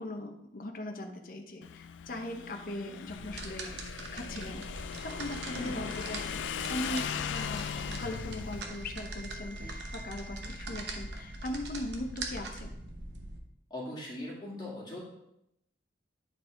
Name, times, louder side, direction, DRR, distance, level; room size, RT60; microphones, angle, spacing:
voice 1, 0.0-3.8 4.1-4.7 5.0-6.4 6.7-12.7, left 1 dB, 50° left, 4 dB, 0.9 m, -39 dB
Motorcycle / Engine, 1.6-8.6, left 8 dB, 85° left, 0.3 m, -39 dB
sound 1, 2.6-11.8 12.1-12.2, right 1 dB, 15° right, 0.6 m, -52 dB
sound 2, 3.2-13.4, right 2 dB, 65° right, 1.0 m, -42 dB
voice 2, 5.5-5.8 13.7-15.0, left 1 dB, 25° left, -5 dB, 2.3 m, -39 dB
9.9 x 4.7 x 3.8 m, 0.82 s
head